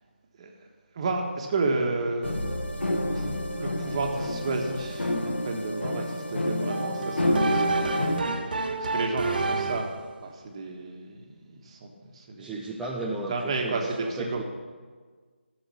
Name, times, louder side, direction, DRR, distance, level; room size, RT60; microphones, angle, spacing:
voice 1, 0.9-7.9 8.8-9.9 10.2-12.5 13.3-14.4, right 3 dB, 30° right, 2 dB, 1.5 m, -32 dB
sound 1, 2.2-8.2, left 1 dB, 70° left, 1.6 m, -29 dB
sound 2, 6.7-10.0, right 3 dB, 50° right, 1.3 m, -29 dB
voice 2, 12.4-14.4, right 2 dB, 5° right, -4 dB, 0.4 m, -34 dB
14.0 x 7.1 x 7.0 m, 1.5 s
figure-of-eight pair, 155°, 6 cm